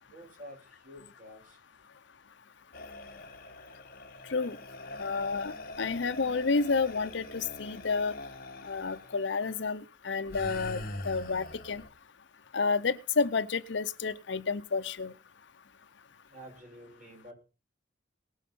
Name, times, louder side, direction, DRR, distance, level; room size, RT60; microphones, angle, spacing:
voice 1, 0.1-1.6 16.3-17.3, equal, 40° right, 0 dB, 5.9 m, -49 dB
sound 1, 2.7-9.2 10.3-11.9, left 2 dB, 50° left, 1.3 m, -43 dB
voice 2, 5.0-5.5 5.8-8.1 8.6-10.8 11.1-11.8 12.5-15.1, left 4 dB, 70° left, 13 dB, 0.7 m, -30 dB
18.5 x 6.5 x 5.4 m, 0.33 s
head